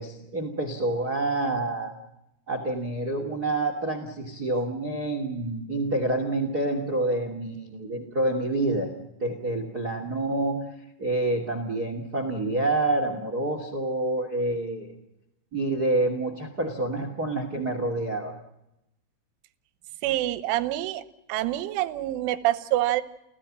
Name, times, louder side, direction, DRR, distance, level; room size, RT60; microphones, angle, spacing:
voice 1, 0.0-1.9 2.5-8.9 9.2-10.6 11.0-14.9 15.5-18.3, right 2 dB, 35° right, 7 dB, 1.6 m, -27 dB
voice 2, 20.0-21.0 21.3-23.0, right 15 dB, 75° right, 12 dB, 3.4 m, -26 dB
29.5 x 16.5 x 7.4 m, 0.87 s
omnidirectional pair, 5.9 m